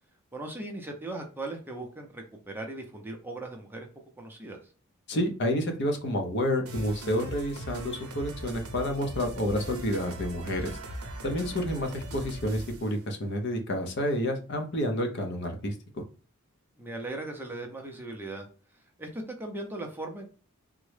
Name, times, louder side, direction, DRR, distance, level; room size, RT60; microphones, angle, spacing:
voice 1, 0.3-3.9 4.2-4.6 11.3-11.7 16.8-18.5 18.7-20.3, right 2 dB, 10° right, 2 dB, 0.5 m, -38 dB
voice 2, 5.1-10.8 11.2-16.0, left 1 dB, 50° left, 5 dB, 0.6 m, -29 dB
sound 1, 6.7-12.9, right 1 dB, 75° right, 0.7 m, -40 dB
3.6 x 2.1 x 3.2 m, 0.38 s
head